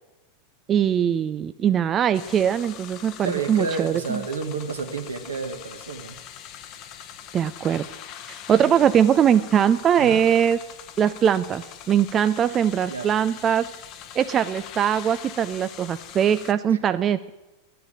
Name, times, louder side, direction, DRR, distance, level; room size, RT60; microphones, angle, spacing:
voice 1, 0.7-4.2 7.3-7.8 8.3-10.6 11.0-13.7 14.2-17.3, right 9 dB, 25° right, 12 dB, 0.4 m, -21 dB
sound 1, 2.1-16.5, left 10 dB, 40° left, 1.0 m, -42 dB
voice 2, 3.2-6.2 8.5-8.8 10.0-10.2 12.9-13.1 16.7-16.8, right 4 dB, 70° right, 6 dB, 1.5 m, -31 dB
11.0 x 10.0 x 8.8 m, 1.0 s
figure-of-eight pair, 90°, 0 cm